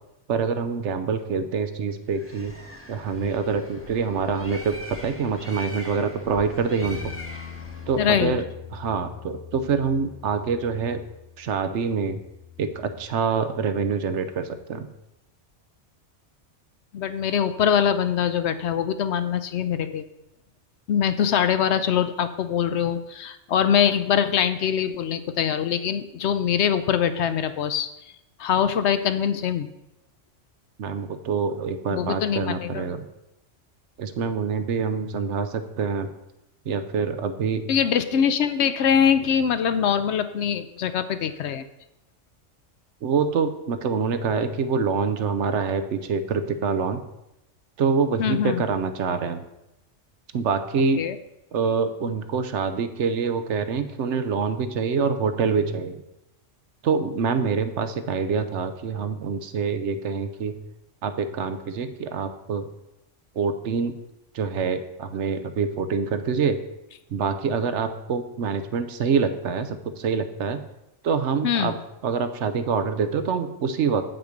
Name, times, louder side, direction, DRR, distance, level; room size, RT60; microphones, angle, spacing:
voice 1, 0.3-2.5 2.9-7.1 7.9-8.4 8.7-11.0 11.4-12.2 12.6-14.9 30.8-33.1 34.0-36.1 36.7-37.7 43.0-47.0 47.8-49.4 50.3-51.0 51.5-56.0 56.8-60.6 61.0-62.7 63.3-64.0 64.3-66.6 67.1-70.6 71.0-71.8 72.0-74.0, right 5 dB, 75° right, 9 dB, 1.0 m, -25 dB
Bird, 2.1-8.1, left 1 dB, 10° left, 1.1 m, -41 dB
Bass guitar, 6.8-13.1, left 8 dB, 30° right, 1.5 m, -43 dB
voice 2, 8.0-8.4 16.9-20.1 20.9-27.9 28.4-29.7 31.9-32.9 37.7-41.6 48.2-48.6 51.0-51.2 71.4-71.8, left 8 dB, 70° left, 11 dB, 0.8 m, -23 dB
7.9 x 5.9 x 5.1 m, 0.88 s
omnidirectional pair, 1.3 m